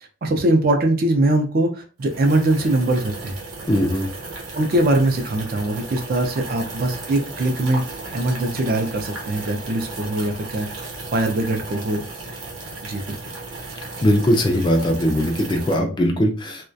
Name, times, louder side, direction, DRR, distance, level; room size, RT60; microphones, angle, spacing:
voice 1, 0.2-3.4 4.5-7.8 8.1-10.7 11.1-12.0 12.8-13.2, right 1 dB, 45° right, 4 dB, 0.4 m, -21 dB
sound 1, 2.0-15.8, right 3 dB, 85° right, 0.8 m, -35 dB
voice 2, 3.7-4.1 14.0-16.6, equal, 20° left, 2 dB, 0.3 m, -20 dB
2.3 x 2.2 x 2.5 m, 0.36 s
head